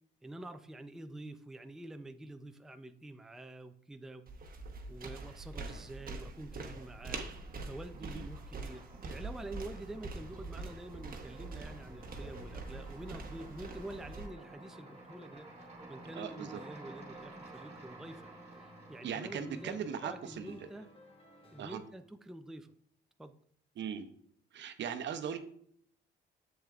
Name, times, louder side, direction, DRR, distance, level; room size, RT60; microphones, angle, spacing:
voice 1, 0.2-4.2 4.9-7.2 7.6-15.5 15.9-20.9 21.5-22.7 23.2-23.3, right 1 dB, ahead, 7 dB, 0.4 m, -47 dB
sound 1, 4.3-14.3, right 3 dB, 45° right, 1.0 m, -44 dB
sound 2, 5.3-5.9 6.2-21.3, right 3 dB, 30° right, 1.9 m, -54 dB
sound 3, 11.8-21.9, left 2 dB, 30° left, 1.1 m, -58 dB
voice 2, 16.2-16.6 19.0-20.6 21.6-21.8 23.8-24.1 24.5-25.4, right 7 dB, 65° right, 9 dB, 0.7 m, -39 dB
7.4 x 7.2 x 2.4 m, 0.63 s
cardioid pair, 90°, 20 cm